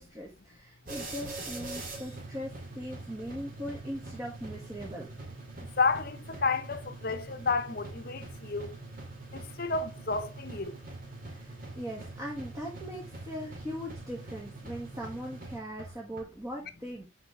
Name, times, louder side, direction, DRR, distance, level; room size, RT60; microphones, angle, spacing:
voice 1, 0.0-5.1 11.3-17.1, equal, 15° right, 1.8 m, -40 dB
sound 1, 0.9-16.2, right 2 dB, 45° right, 2.6 m, -44 dB
voice 2, 5.6-8.7 9.3-10.8, left 4 dB, 45° left, 1.0 m, -31 dB
9.6 x 5.2 x 3.3 m
head